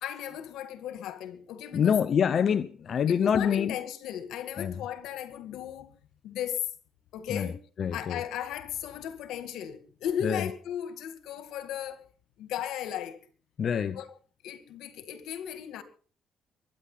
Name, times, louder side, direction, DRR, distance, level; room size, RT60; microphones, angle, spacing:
voice 1, 0.0-2.0 2.3-2.4 3.1-5.9 6.2-6.7 7.1-7.6 7.9-12.0 12.4-13.2 13.9-14.1 14.4-15.8, left 9 dB, 90° left, 2.1 m, -36 dB
voice 2, 1.7-3.7 4.6-4.7 7.3-7.5 7.8-8.2 10.2-10.5 13.6-14.0, left 7 dB, 55° left, 0.8 m, -26 dB
22.5 x 10.0 x 5.7 m
cardioid pair, 90°, 0 cm